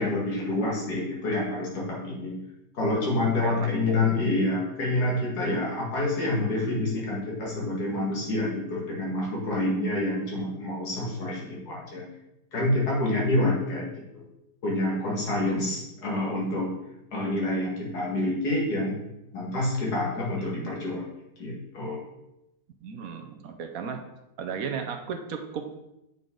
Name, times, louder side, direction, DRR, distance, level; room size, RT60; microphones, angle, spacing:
voice 1, 0.0-2.4 2.7-12.1 12.5-14.2 14.6-16.7 17.1-19.0 19.3-21.0 21.4-22.0, left 2 dB, 60° left, -3 dB, 2.4 m, -27 dB
voice 2, 3.4-4.0 15.4-15.8 20.2-20.7 22.8-24.1 24.4-25.7, right 6 dB, 65° right, 6 dB, 1.0 m, -36 dB
7.4 x 5.4 x 3.8 m, 0.89 s
omnidirectional pair, 1.9 m